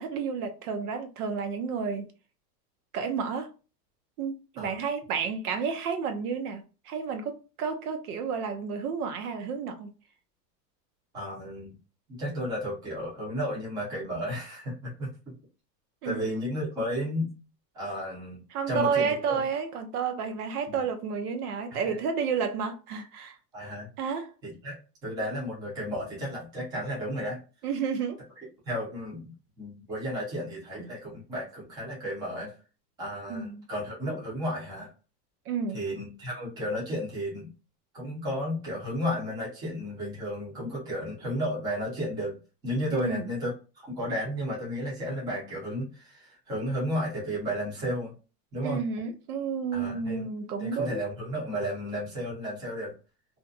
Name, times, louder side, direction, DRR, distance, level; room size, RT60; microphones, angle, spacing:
voice 1, 0.0-2.1 2.9-3.5 4.2-9.9 16.0-16.3 18.5-23.4 24.0-24.3 27.6-28.2 33.3-33.6 35.5-35.8 42.9-43.3 48.6-51.0, right 6 dB, 65° right, 0.6 m, -31 dB
voice 2, 11.1-11.7 12.1-15.1 16.0-17.3 17.7-18.4 18.7-19.2 20.7-20.8 21.7-22.0 23.5-23.9 24.4-27.4 28.6-29.3 29.6-32.5 33.0-34.9 35.7-37.5 37.9-42.4 42.6-48.1 48.5-48.8 49.7-50.2 50.6-52.9, equal, 10° right, 0.6 m, -33 dB
2.5 x 2.2 x 2.4 m
supercardioid pair, 165°, 50 cm